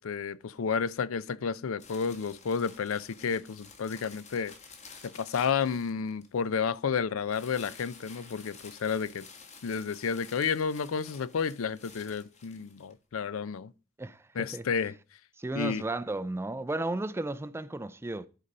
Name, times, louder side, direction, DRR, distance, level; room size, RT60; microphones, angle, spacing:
voice 1, 0.0-4.5 5.1-9.3 9.6-13.7 14.4-14.9 15.6-15.8, left 6 dB, 70° left, 0.4 m, -31 dB
sound 1, 1.8-6.4 7.3-12.9, left 5 dB, 35° left, 1.4 m, -52 dB
voice 2, 14.0-14.6 15.4-18.3, right 2 dB, 10° right, 0.4 m, -34 dB
11.5 x 4.0 x 5.3 m
head